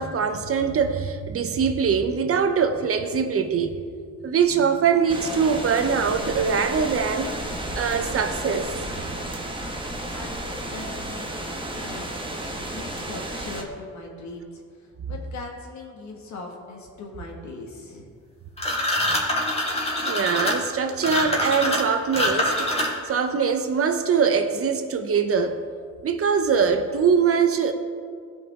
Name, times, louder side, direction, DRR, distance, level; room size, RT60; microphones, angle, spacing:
voice 1, 0.0-3.8 4.2-7.3 7.7-8.7 20.0-22.7 23.0-25.6 26.0-27.7, right 6 dB, 50° right, 0.8 m, -22 dB
sound 1, 5.1-13.6, right 1 dB, 15° right, 1.2 m, -32 dB
voice 2, 10.1-12.1 12.5-18.1, left 3 dB, 65° left, 1.9 m, -40 dB
sound 2, 18.6-23.2, left 1 dB, 20° left, 2.2 m, -24 dB
15.0 x 5.5 x 3.7 m
cardioid pair, 90°, 30 cm